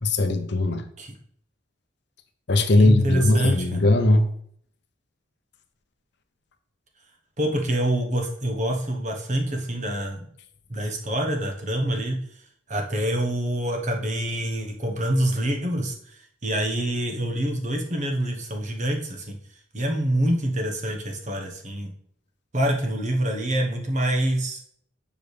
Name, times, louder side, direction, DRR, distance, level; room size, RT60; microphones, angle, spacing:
voice 1, 0.0-0.8 2.5-4.3, left 2 dB, 60° left, 8 dB, 0.7 m, -19 dB
voice 2, 2.8-3.8 7.4-10.3 10.7-12.2 12.7-15.9 16.4-19.4 19.7-21.9 22.5-24.6, right 1 dB, 40° right, 2 dB, 1.2 m, -26 dB
7.0 x 5.1 x 3.3 m, 0.64 s
head